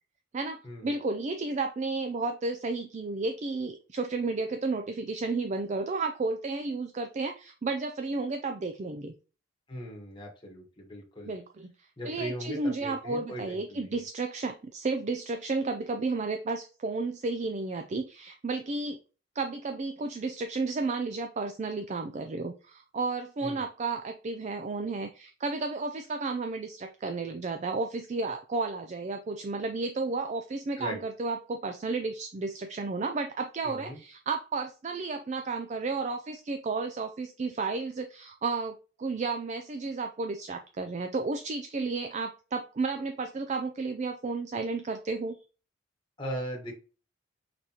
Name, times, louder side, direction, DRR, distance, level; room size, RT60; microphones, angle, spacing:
voice 1, 0.3-9.1 11.2-11.7 12.1-19.0 19.4-45.4, right 3 dB, 35° right, 6 dB, 0.3 m, -32 dB
voice 2, 9.7-11.3 12.0-14.0 23.4-23.6 30.8-31.0 33.6-34.0 46.2-46.7, equal, 25° left, -1 dB, 1.0 m, -38 dB
4.7 x 4.0 x 2.9 m, 0.35 s
head